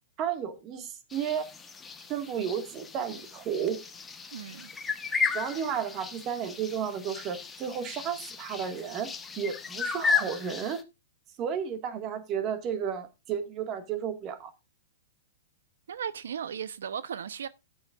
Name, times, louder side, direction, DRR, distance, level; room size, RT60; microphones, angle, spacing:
voice 1, 0.2-1.5 2.1-3.8 5.3-10.8 11.4-14.5, right 8 dB, 25° right, 1.7 m, -33 dB
sound 1, 1.1-10.8, left 5 dB, 10° left, 1.1 m, -34 dB
voice 2, 4.3-4.7 15.9-17.5, right 8 dB, 85° right, 0.7 m, -36 dB
12.5 x 9.5 x 2.4 m
hypercardioid pair, 165°, 0 cm